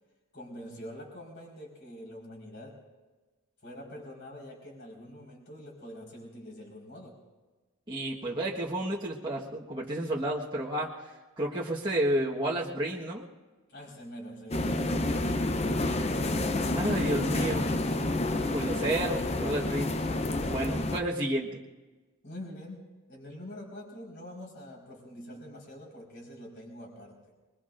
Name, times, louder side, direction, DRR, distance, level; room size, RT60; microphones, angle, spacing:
voice 1, 0.3-2.8 3.6-7.2 13.7-16.1 22.2-27.3, left 1 dB, 55° left, -2 dB, 4.7 m, -45 dB
voice 2, 7.9-10.9 11.4-13.2 16.7-17.7 18.5-20.0 20.5-21.6, right 1 dB, 25° right, -5 dB, 1.4 m, -31 dB
sound 1, 14.5-21.0, left 2 dB, 30° left, 0.7 m, -29 dB
26.0 x 22.0 x 2.6 m, 1.2 s
head